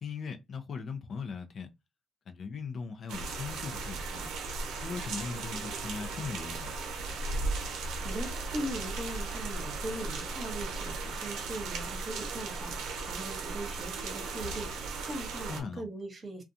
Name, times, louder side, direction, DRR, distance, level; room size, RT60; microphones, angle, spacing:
voice 1, 0.0-1.7 2.3-4.3 4.8-6.7 15.5-15.8, left 5 dB, 55° left, 0.5 m, -39 dB
sound 1, 3.1-15.6, right 3 dB, 90° right, 0.6 m, -36 dB
voice 2, 7.7-16.4, right 1 dB, 35° right, 1.0 m, -40 dB
2.4 x 2.2 x 2.6 m
cardioid pair, 90°, 0 cm